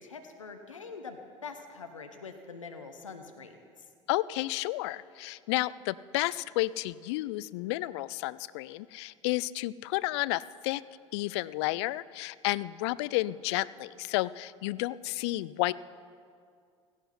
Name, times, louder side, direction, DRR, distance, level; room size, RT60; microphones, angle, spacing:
voice 1, 0.0-3.5, left 4 dB, 85° left, 5 dB, 1.0 m, -44 dB
voice 2, 4.1-10.8 11.1-15.7, left 18 dB, 60° left, 18 dB, 0.4 m, -31 dB
17.0 x 15.5 x 4.3 m, 2.2 s
figure-of-eight pair, 70°, 16 cm